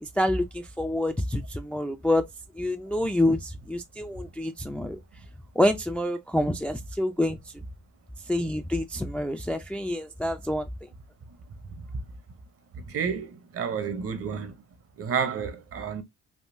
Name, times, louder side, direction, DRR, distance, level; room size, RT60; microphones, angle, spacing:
voice 1, 0.0-2.2 2.5-5.0 5.6-7.7 8.3-10.9, left 1 dB, 5° left, 0.3 m, -27 dB
voice 2, 12.7-14.5 15.0-16.0, right 6 dB, 50° right, 0.8 m, -30 dB
3.6 x 2.3 x 2.5 m
cardioid pair, 90°, 30 cm